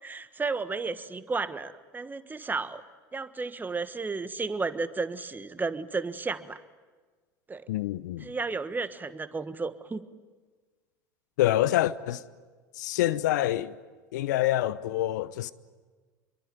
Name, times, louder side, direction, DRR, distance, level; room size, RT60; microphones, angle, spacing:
voice 1, 0.0-2.8 3.1-6.6 7.5-7.6 8.2-10.1, right 4 dB, 20° right, 1.5 m, -33 dB
voice 2, 7.7-8.3 11.4-12.2 12.8-13.7 14.1-15.5, left 14 dB, 70° left, 0.8 m, -26 dB
27.0 x 23.0 x 9.3 m
hypercardioid pair, 75°, 10 cm